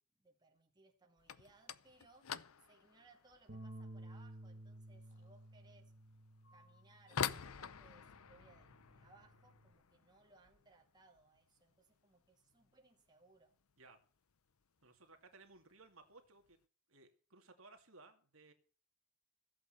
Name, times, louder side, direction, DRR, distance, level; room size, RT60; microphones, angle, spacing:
voice 1, 0.0-5.9 6.5-13.6, right 3 dB, 20° right, 2.2 m, -67 dB
sound 1, 1.2-11.9 12.2-12.8 13.1-13.4 13.7-13.8 14.5-14.6 15.5-15.7 16.1-16.5, left 7 dB, 90° left, 0.7 m, -48 dB
Breathing, 3.4-4.5 5.0-5.7 6.4-7.4, left 2 dB, 60° left, 3.9 m, -72 dB
sound 2, 3.5-9.7, right 1 dB, 50° right, 1.4 m, -55 dB
voice 2, 14.8-16.6 16.9-18.5, right 3 dB, 70° right, 2.5 m, -61 dB
15.5 x 8.3 x 6.8 m
head